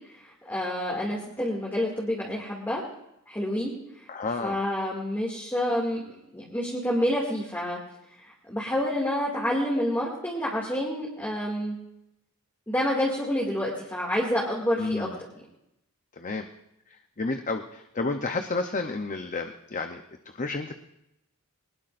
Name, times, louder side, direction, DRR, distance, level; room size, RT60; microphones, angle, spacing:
voice 1, 0.1-2.8 3.3-4.0 4.4-7.8 8.2-11.8 12.7-15.1, left 1 dB, 10° left, -3 dB, 2.3 m, -28 dB
voice 2, 4.1-4.6 14.8-15.2 16.1-16.5 16.9-20.0 20.3-20.7, left 3 dB, 35° left, 6 dB, 0.8 m, -31 dB
21.0 x 19.5 x 2.6 m, 0.84 s
head